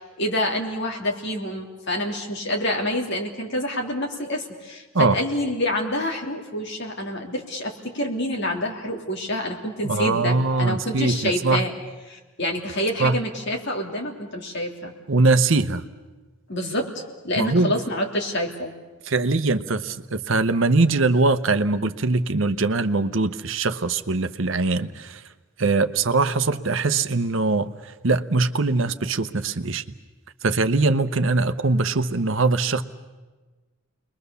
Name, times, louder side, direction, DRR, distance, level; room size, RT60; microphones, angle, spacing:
voice 1, 0.0-11.7 12.1-14.9 16.5-18.7, left 1 dB, 55° left, 1 dB, 3.0 m, -27 dB
voice 2, 9.8-11.6 13.0-13.1 15.1-15.8 17.4-17.7 19.1-25.2 25.6-27.7 28.0-29.8 30.4-32.8, right 3 dB, 65° right, 11 dB, 0.9 m, -22 dB
29.5 x 22.0 x 6.9 m, 1.3 s
head